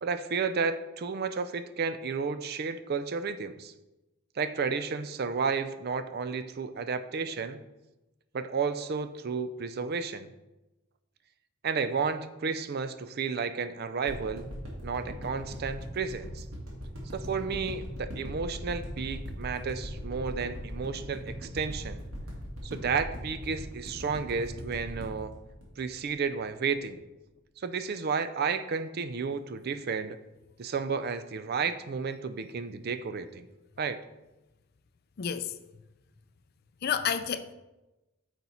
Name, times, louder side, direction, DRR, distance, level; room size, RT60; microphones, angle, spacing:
voice 1, 0.0-3.7 4.4-7.6 8.3-10.3 11.6-14.5 14.8-16.4 17.1-22.0 22.6-25.3 25.8-27.0 27.6-30.2 30.6-33.5 33.8-34.0, right 5 dB, 45° right, 0.4 m, -32 dB
sound 1, 14.1-26.4 26.8-26.9, equal, 80° right, 2.2 m, -40 dB
voice 2, 35.2-35.5 36.8-37.5, left 7 dB, 45° left, 0.4 m, -30 dB
8.8 x 4.1 x 4.2 m
head